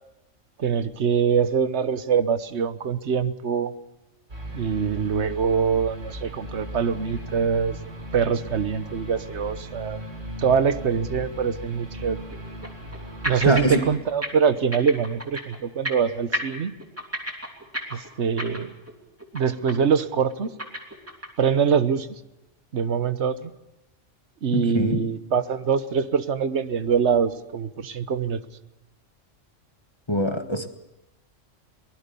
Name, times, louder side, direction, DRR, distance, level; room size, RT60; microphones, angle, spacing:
voice 1, 0.6-3.7 4.5-7.8 8.1-10.0 10.4-12.2 13.2-16.7 17.9-18.7 19.3-20.5 21.4-22.1 22.7-23.5 24.4-28.4, right 6 dB, 65° right, 13 dB, 1.3 m, -24 dB
sound 1, 4.3-14.0, equal, 80° right, 4.3 m, -37 dB
sound 2, 7.0-7.2 7.6-7.7 8.3-8.4 11.5-11.6 12.3-13.0 13.2-13.8 14.1-14.3 14.6-15.6 15.9-16.1 16.3-18.9 19.2-19.4 19.7-20.0 20.3-21.4, equal, 10° right, 3.0 m, -32 dB
voice 2, 13.4-13.8 24.5-25.0 30.1-30.7, equal, 20° left, 7 dB, 1.5 m, -23 dB
23.0 x 19.5 x 6.9 m, 0.93 s
omnidirectional pair, 1.3 m